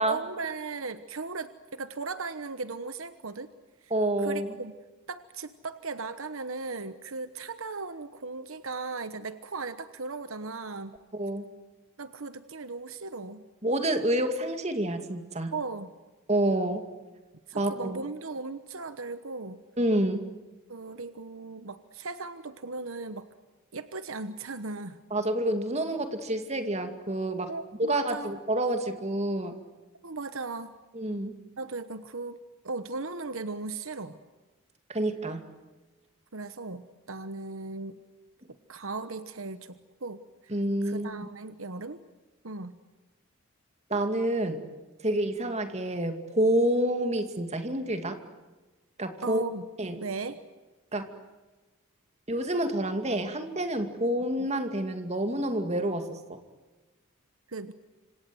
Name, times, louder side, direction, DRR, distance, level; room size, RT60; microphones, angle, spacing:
voice 1, 0.0-3.5 4.2-4.7 5.1-11.0 12.0-13.4 15.5-15.9 17.5-19.6 20.7-23.3 23.7-25.0 27.5-28.4 30.0-30.7 31.6-32.4 32.6-34.2 36.3-38.0 38.7-40.5 40.8-42.0 42.4-42.8 49.2-49.7 49.9-50.4 57.5-57.7, right 3 dB, 70° right, 11 dB, 1.2 m, -37 dB
voice 2, 3.9-4.5 11.1-11.5 13.6-15.5 16.3-16.8 17.6-18.0 19.8-20.2 25.1-27.5 27.8-29.5 30.9-31.3 34.9-35.4 40.5-41.1 43.9-44.6 45.0-48.2 49.0-49.4 49.8-50.0 50.9-51.1 52.3-56.4, right 1 dB, 30° right, 7 dB, 2.5 m, -28 dB
26.5 x 26.5 x 7.9 m, 1.2 s
head